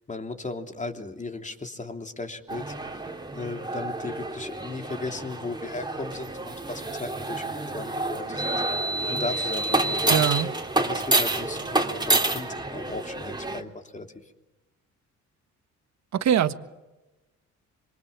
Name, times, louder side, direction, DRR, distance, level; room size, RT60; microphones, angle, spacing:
voice 1, 0.1-2.8 3.3-8.6 9.1-10.3 10.8-14.1, left 3 dB, 25° left, 3.2 m, -36 dB
sound 1, 2.5-13.6, right 2 dB, 15° right, 3.2 m, -28 dB
voice 2, 10.1-10.5 16.1-16.5, right 9 dB, 65° right, 1.6 m, -22 dB
26.5 x 24.5 x 7.4 m
cardioid pair, 90°, 30 cm